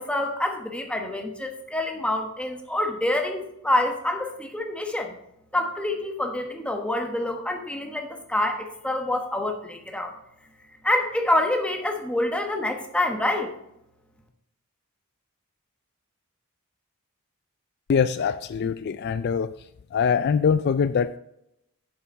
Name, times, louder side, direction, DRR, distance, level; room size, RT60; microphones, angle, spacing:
voice 1, 0.0-5.1 5.5-10.1 10.8-13.6, left 1 dB, 5° left, 3 dB, 1.2 m, -27 dB
voice 2, 17.9-19.5 19.9-21.2, left 6 dB, 50° left, 13 dB, 0.3 m, -23 dB
7.5 x 7.2 x 5.4 m, 0.80 s
head